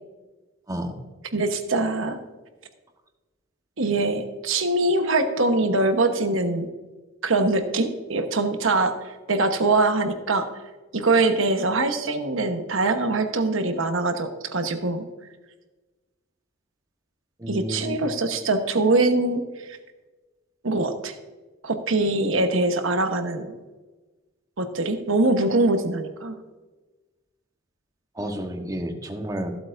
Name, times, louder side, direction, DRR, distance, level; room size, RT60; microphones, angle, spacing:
voice 1, 1.3-2.2 3.8-6.7 7.2-8.9 9.3-10.5 10.9-15.1 17.5-19.8 20.6-21.1 21.6-23.5 24.6-26.4, right 2 dB, 70° right, 7 dB, 1.1 m, -23 dB
voice 2, 17.4-18.0 28.2-29.5, right 1 dB, 15° right, 4 dB, 1.1 m, -31 dB
14.5 x 8.0 x 2.6 m, 1.2 s
head